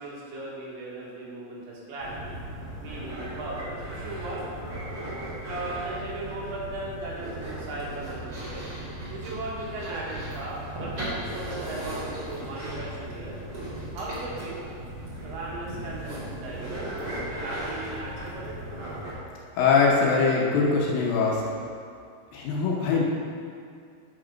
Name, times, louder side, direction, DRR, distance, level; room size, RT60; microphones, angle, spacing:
voice 1, 0.0-2.4 2.8-4.4 5.4-8.6 9.1-13.4 13.9-14.6 15.2-16.9 17.3-18.6, right 2 dB, 80° right, -5 dB, 3.4 m, -37 dB
sound 1, 2.0-19.1, right 1 dB, 35° right, 1.8 m, -37 dB
voice 2, 19.5-21.4 22.3-23.0, left 4 dB, 75° left, -3 dB, 2.4 m, -22 dB
8.8 x 4.8 x 5.0 m, 2.3 s
omnidirectional pair, 4.6 m